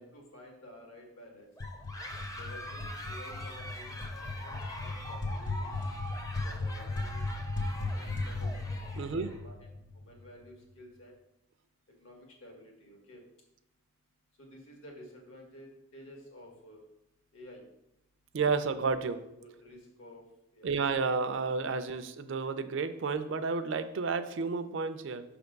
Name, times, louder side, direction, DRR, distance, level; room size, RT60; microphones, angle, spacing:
voice 1, 0.1-1.5 2.3-5.7 6.4-8.5 8.9-9.7 10.0-11.1 12.0-13.2 14.4-16.8 17.3-17.6 19.3-20.2 20.5-20.7, equal, 80° left, 0 dB, 1.6 m, -52 dB
sound 1, 1.6-10.3, left 2 dB, 55° left, 0.8 m, -37 dB
sound 2, 1.6-9.4, equal, 15° left, 0.5 m, -44 dB
voice 2, 9.0-9.3 18.3-19.2 20.6-25.2, right 4 dB, 65° right, 11 dB, 0.4 m, -31 dB
6.0 x 3.5 x 5.2 m, 0.84 s
head